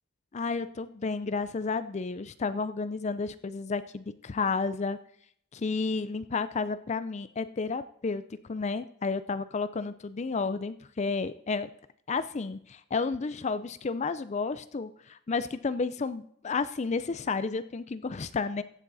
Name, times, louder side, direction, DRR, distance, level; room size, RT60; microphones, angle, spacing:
voice 1, 0.3-5.0 5.5-11.7 12.1-18.6, left 4 dB, 35° left, 13 dB, 0.4 m, -31 dB
15.5 x 8.2 x 4.0 m, 0.67 s
head